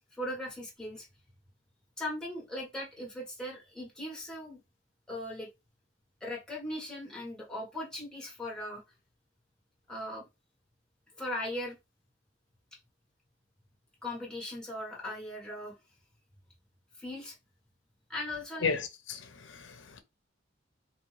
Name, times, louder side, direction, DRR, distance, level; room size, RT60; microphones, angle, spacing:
voice 1, 0.2-1.1 2.0-4.6 5.1-5.5 6.2-8.8 9.9-10.2 11.2-11.8 14.0-15.7 17.0-17.4 18.1-18.8, left 1 dB, 5° left, 1.4 m, -38 dB
voice 2, 18.6-20.0, left 5 dB, 90° left, 0.8 m, -34 dB
3.8 x 2.7 x 3.2 m
head